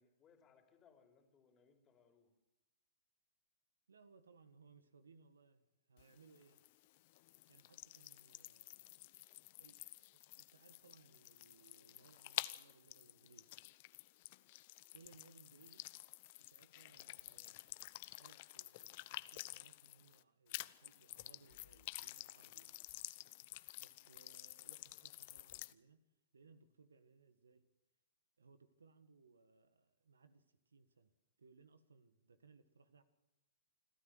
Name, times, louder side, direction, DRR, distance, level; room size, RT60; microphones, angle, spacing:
voice 1, 0.0-2.3, left 6 dB, 25° left, 4 dB, 3.4 m, -69 dB
voice 2, 3.9-5.6 5.9-6.6 7.5-9.1 9.6-13.5 14.9-15.9 16.4-22.8 23.8-26.0 26.3-27.6 28.4-31.1 31.4-33.0, right 4 dB, 80° right, 12 dB, 1.6 m, -66 dB
sound 1, 6.0-20.2 20.5-25.7, left 19 dB, 45° left, 0.7 m, -51 dB
26.5 x 13.0 x 8.0 m, 0.98 s
hypercardioid pair, 115°, 0 cm